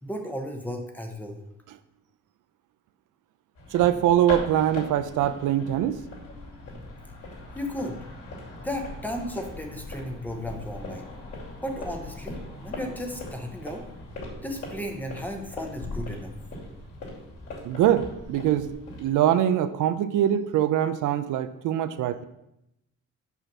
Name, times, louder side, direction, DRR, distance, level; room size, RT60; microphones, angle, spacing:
voice 1, 0.0-1.4 7.5-8.0 8.6-11.1 11.6-13.8 14.4-16.3, equal, 5° left, 3 dB, 0.8 m, -34 dB
sound 1, 3.6-19.1, left 2 dB, 55° left, 2.8 m, -40 dB
voice 2, 3.7-6.0 17.6-18.7 19.0-22.2, right 11 dB, 75° right, 12 dB, 0.5 m, -23 dB
5.8 x 5.6 x 6.0 m, 0.85 s
cardioid pair, 165°, 31 cm